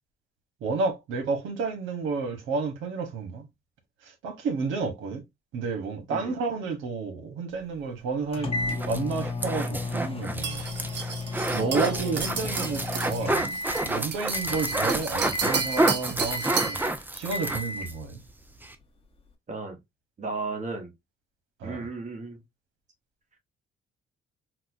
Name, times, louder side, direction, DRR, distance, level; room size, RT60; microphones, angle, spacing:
voice 1, 0.6-3.4 4.2-5.2 5.5-10.6 11.5-13.6 13.8-16.8 17.1-18.2 21.6-21.8, right 4 dB, 90° right, 1.1 m, -31 dB
sound 1, 8.3-14.0 14.3-14.9 15.3-16.0 16.3-16.9 17.3-17.9, left 3 dB, 30° left, 0.9 m, -33 dB
sound 2, 8.6-18.0 18.3-18.4 18.6-18.7, right 2 dB, 10° right, 0.5 m, -29 dB
sound 3, 10.4-16.9, right 6 dB, 60° right, 0.8 m, -34 dB
voice 2, 11.6-12.1 19.5-19.8 20.2-20.9 21.6-22.4, right 3 dB, 40° right, 1.2 m, -35 dB
4.1 x 2.1 x 2.6 m
cardioid pair, 90°, 20 cm